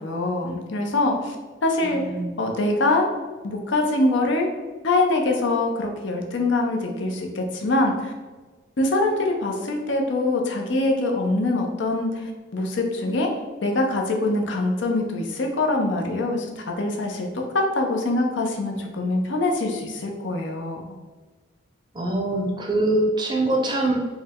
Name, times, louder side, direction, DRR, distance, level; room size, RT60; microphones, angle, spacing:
voice 1, 0.0-1.4 1.6-2.0 2.4-3.1 3.4-4.5 4.8-8.1 8.8-13.3 13.6-20.9, left 2 dB, 75° left, 2 dB, 0.6 m, -24 dB
voice 2, 1.8-2.4 21.9-23.9, right 2 dB, 25° right, 0 dB, 0.5 m, -23 dB
4.7 x 2.1 x 3.6 m, 1.4 s
head